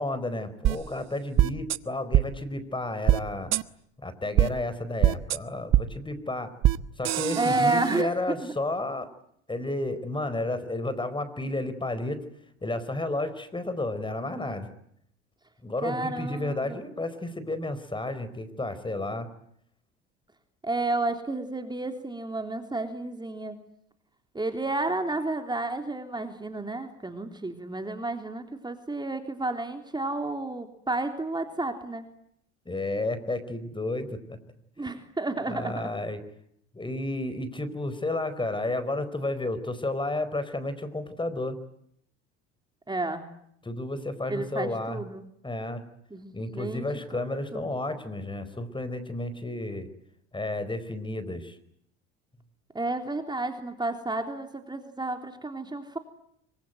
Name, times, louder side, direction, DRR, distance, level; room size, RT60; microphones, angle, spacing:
voice 1, 0.0-3.5 4.0-6.5 7.0-9.1 9.5-12.2 12.6-14.7 15.6-19.3 32.6-34.4 35.5-36.2 36.7-41.6 43.6-45.0 45.4-45.8 46.3-49.9 50.3-51.6, left 2 dB, 15° left, 13 dB, 4.6 m, -32 dB
sound 1, 0.6-0.7 1.4-1.8 2.1-2.2 3.1-3.2 3.5-3.6 4.4-4.5 5.0-5.4 5.7-5.8 6.6-6.8 7.0-8.0, right 13 dB, 50° right, 1.3 m, -22 dB
voice 2, 7.4-8.5 15.8-16.8 20.6-23.6 24.3-32.1 34.8-35.9 42.9-43.2 44.3-45.2 46.1-47.3 47.5-47.7 52.7-56.0, right 2 dB, 15° right, 5 dB, 3.5 m, -31 dB
25.5 x 24.5 x 9.3 m, 0.71 s
hypercardioid pair, 80°, 34 cm